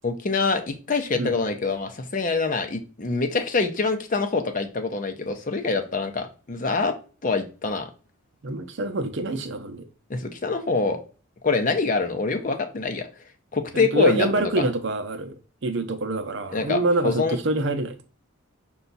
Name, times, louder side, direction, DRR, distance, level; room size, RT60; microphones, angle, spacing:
voice 1, 0.0-7.0 7.2-7.9 10.1-11.0 11.4-13.1 13.5-14.6 16.5-17.4, left 4 dB, 40° left, 0.6 m, -25 dB
voice 2, 8.4-9.8 13.7-18.0, right 2 dB, 60° right, 0.6 m, -26 dB
5.6 x 2.3 x 3.9 m
head